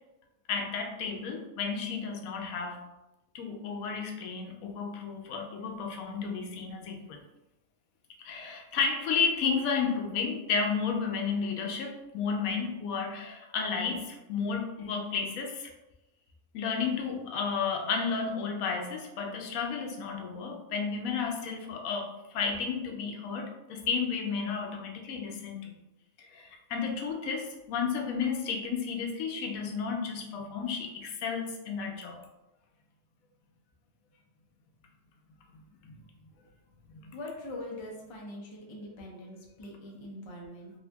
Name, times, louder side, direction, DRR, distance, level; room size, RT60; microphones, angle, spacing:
voice 1, 0.5-2.8 3.3-7.2 8.2-15.6 16.5-22.1 22.3-25.7 26.7-32.2, left 5 dB, 85° left, 2 dB, 1.1 m, -32 dB
voice 2, 37.1-40.7, left 1 dB, 35° left, -2 dB, 0.4 m, -42 dB
2.8 x 2.6 x 3.4 m, 0.99 s
omnidirectional pair, 1.4 m